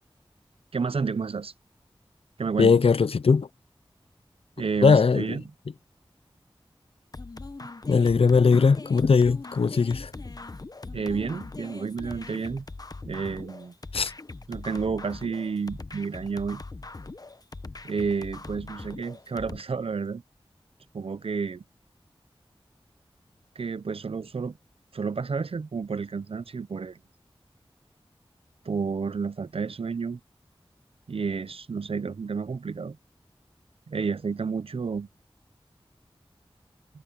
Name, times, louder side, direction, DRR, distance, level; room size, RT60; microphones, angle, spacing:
voice 1, 0.7-1.5 2.4-2.8 4.6-5.4 10.9-12.7 13.0-13.7 14.5-16.6 17.8-20.2 20.9-21.6 23.6-24.6 24.9-27.0 28.7-30.2 31.1-33.0 33.9-35.1, right 5 dB, 75° right, 0.6 m, -30 dB
voice 2, 2.6-3.5 4.8-5.2 7.9-10.1 13.9-14.1, left 5 dB, 75° left, 0.5 m, -19 dB
sound 1, 7.1-19.6, left 3 dB, 40° left, 0.8 m, -41 dB
wide cardioid pair, 65°, 10 cm